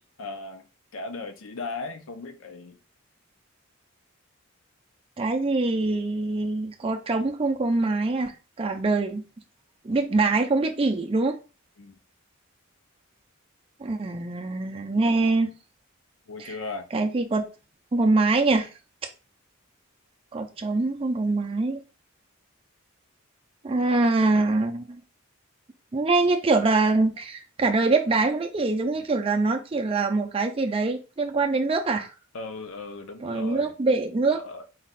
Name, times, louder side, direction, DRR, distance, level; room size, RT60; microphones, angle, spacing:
voice 1, 0.2-0.6 0.9-2.8 11.8-12.0 16.3-16.9 32.3-34.0 34.3-34.7, left 3 dB, 70° left, 0.6 m, -37 dB
voice 2, 5.2-8.3 8.6-9.2 9.8-11.4 13.8-15.5 16.4-16.6 16.9-17.4 17.9-18.7 20.3-21.8 23.6-25.0 25.9-32.1 33.2-34.4, right 3 dB, 25° right, 0.4 m, -24 dB
4.0 x 2.3 x 4.1 m
head